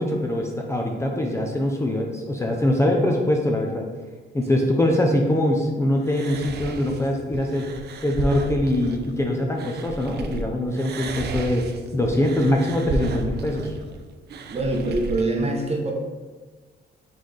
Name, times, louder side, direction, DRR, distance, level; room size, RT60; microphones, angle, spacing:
voice 1, 0.0-3.9 4.3-7.7 8.0-11.7 11.9-13.8, left 1 dB, 15° left, 0 dB, 0.5 m, -23 dB
sound 1, 6.0-10.4 10.7-15.2, right 3 dB, 55° right, 0.5 m, -33 dB
voice 2, 14.5-15.9, right 2 dB, 30° right, 0 dB, 0.8 m, -24 dB
3.9 x 3.9 x 3.2 m, 1.3 s
cardioid pair, 90°, 20 cm